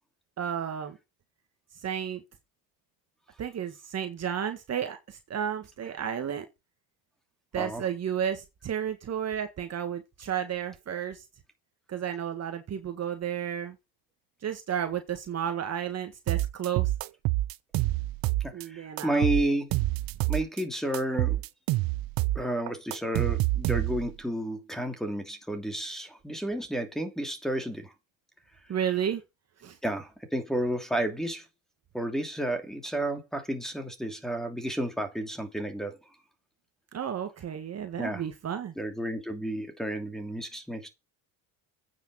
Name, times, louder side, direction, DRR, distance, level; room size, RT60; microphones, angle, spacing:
voice 1, 0.4-1.0 1.8-2.2 3.4-6.5 7.5-11.2 11.9-13.8 14.4-16.9 18.5-19.3 28.7-29.2 29.6-29.8 36.9-38.7, right 9 dB, 40° right, 1.8 m, -32 dB
sound 1, 16.3-18.6 19.0-20.6 20.9-24.2, right 18 dB, 60° right, 0.8 m, -27 dB
voice 2, 18.4-19.7 20.3-21.4 22.3-27.9 29.8-31.4 31.9-35.9 38.0-38.2 38.8-40.9, right 1 dB, ahead, 2.8 m, -31 dB
9.2 x 6.5 x 6.4 m
supercardioid pair, 100°, 40 cm